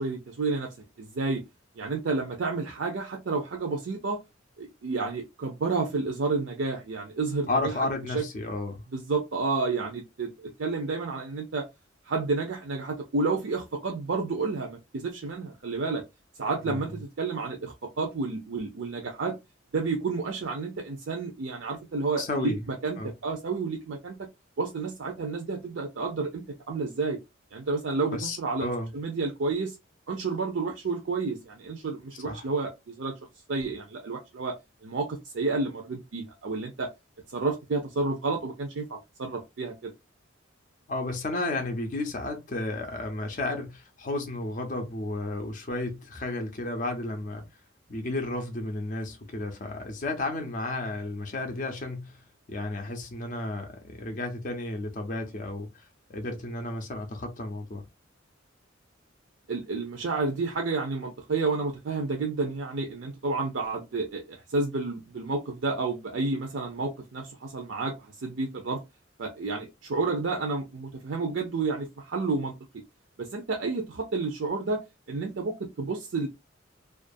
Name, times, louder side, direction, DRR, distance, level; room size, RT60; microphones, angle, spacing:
voice 1, 0.0-1.4 1.8-4.2 4.6-7.5 8.1-8.2 8.9-11.7 12.1-16.0 16.4-19.4 19.7-24.2 24.6-27.2 27.5-28.7 28.9-29.8 30.1-33.1 33.5-34.6 34.8-36.9 37.3-39.9 59.5-68.8 69.2-72.5 73.2-74.8 75.1-76.3, right 3 dB, 65° right, 0.5 m, -30 dB
voice 2, 7.5-8.8 16.7-16.8 22.2-22.6 23.0-23.1 28.1-28.9 32.2-32.4 40.9-47.5 47.9-52.2 52.5-57.8, left 2 dB, 40° left, 0.5 m, -32 dB
2.4 x 2.3 x 2.5 m
head